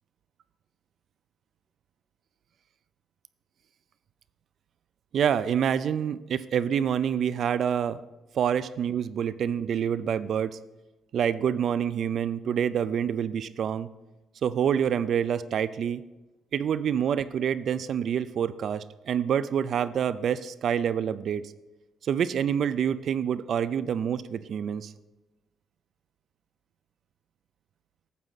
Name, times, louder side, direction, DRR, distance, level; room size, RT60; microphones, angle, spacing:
voice 1, 5.1-8.0 8.3-10.6 11.1-13.9 14.4-16.0 16.5-21.4 22.0-24.9, right 8 dB, 65° right, 17 dB, 0.3 m, -27 dB
9.4 x 7.3 x 4.0 m, 1.1 s
cardioid pair, 90°, 0 cm